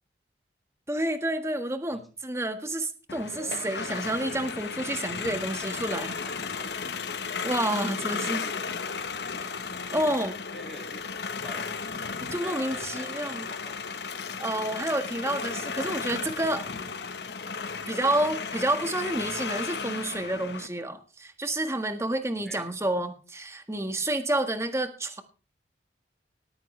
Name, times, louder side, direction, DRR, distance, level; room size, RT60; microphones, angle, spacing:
voice 1, 0.9-6.1 7.4-8.4 9.9-10.3 12.2-13.5 14.4-16.7 17.9-25.2, right 1 dB, 15° right, 7 dB, 1.6 m, -29 dB
sound 1, 3.1-20.7, left 5 dB, 70° left, 1.2 m, -34 dB
voice 2, 5.6-6.7 7.7-8.6 10.5-11.7 12.4-13.7 22.4-22.7, equal, ahead, 3 dB, 2.4 m, -47 dB
18.5 x 14.0 x 3.3 m, 0.35 s
head